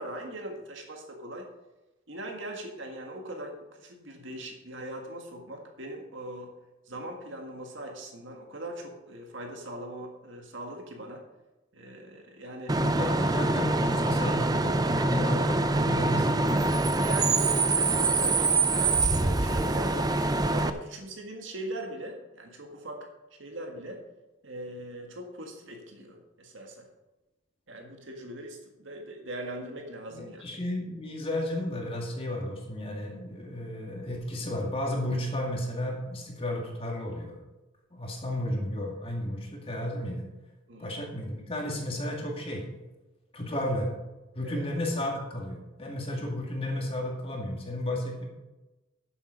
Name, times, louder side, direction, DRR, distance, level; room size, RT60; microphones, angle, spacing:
voice 1, 0.0-1.5 2.1-6.5 6.9-11.2 11.7-13.1 17.0-20.1 20.5-23.1 23.4-24.0 24.4-26.9 27.7-30.6 40.7-40.9 44.4-44.6, right 1 dB, 70° right, 2 dB, 1.8 m, -40 dB
Bus / Idling / Screech, 12.7-20.7, right 3 dB, 20° right, 0.5 m, -25 dB
voice 2, 12.8-16.7 18.8-18.9 30.1-37.4 37.9-40.3 40.8-42.7 43.3-43.9 44.3-48.3, left 1 dB, 30° left, 0 dB, 2.2 m, -33 dB
12.5 x 7.5 x 5.2 m, 1.0 s
head